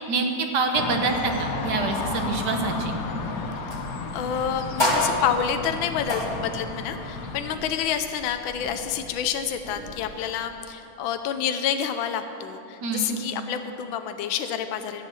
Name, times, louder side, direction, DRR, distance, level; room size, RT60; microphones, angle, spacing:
voice 1, 0.1-3.0 12.8-13.2, right 4 dB, 60° right, 4 dB, 1.6 m, -26 dB
sound 1, 0.7-7.4, left 3 dB, 55° left, 1.2 m, -32 dB
sound 2, 2.8-10.2, left 1 dB, 15° left, 1.9 m, -32 dB
voice 2, 4.1-15.1, left 8 dB, 75° left, 8 dB, 1.5 m, -28 dB
13.0 x 10.0 x 6.2 m, 2.7 s
omnidirectional pair, 2.2 m